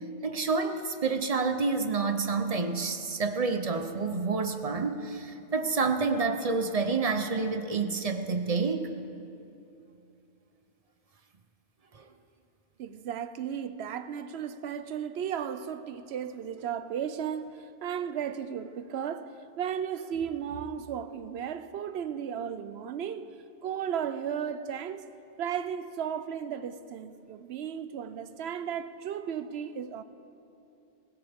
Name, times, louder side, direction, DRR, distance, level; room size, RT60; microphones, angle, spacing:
voice 1, 0.2-8.9 11.9-12.0, right 4 dB, 35° right, 0.9 m, -28 dB
voice 2, 12.8-23.4 23.6-25.1 25.4-30.0, right 8 dB, 80° right, 0.9 m, -35 dB
20.5 x 16.0 x 3.6 m
omnidirectional pair, 1.1 m